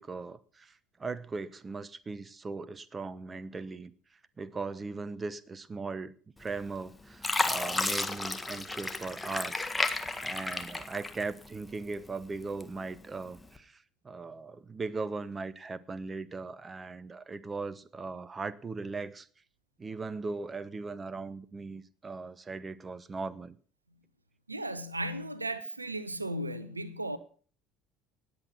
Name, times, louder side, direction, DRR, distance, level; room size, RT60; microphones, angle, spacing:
voice 1, 0.0-6.1 6.4-9.9 10.2-19.3 19.8-23.6, right 4 dB, 25° right, 19 dB, 1.0 m, -39 dB
Fill (with liquid), 6.5-6.8 7.2-11.6 12.1-12.9 13.4-13.6, left 2 dB, 15° left, 1.7 m, -32 dB
voice 2, 24.5-27.2, right 1 dB, 90° right, 15 dB, 0.7 m, -35 dB
19.0 x 8.2 x 5.9 m, 0.42 s
figure-of-eight pair, 60°, 0 cm